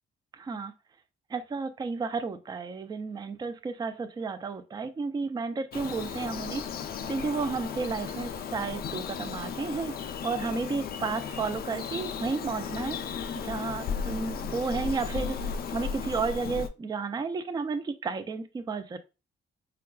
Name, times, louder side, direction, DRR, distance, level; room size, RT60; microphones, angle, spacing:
voice 1, 0.3-0.7 1.3-6.6 7.1-13.0 13.3-15.4 15.7-19.0, right 4 dB, 20° right, 10 dB, 0.4 m, -32 dB
Bird vocalization bird call bird song, 5.7-16.7, left 6 dB, 50° left, 0.4 m, -35 dB
4.5 x 2.3 x 2.3 m, 0.29 s
cardioid pair, 90°, 20 cm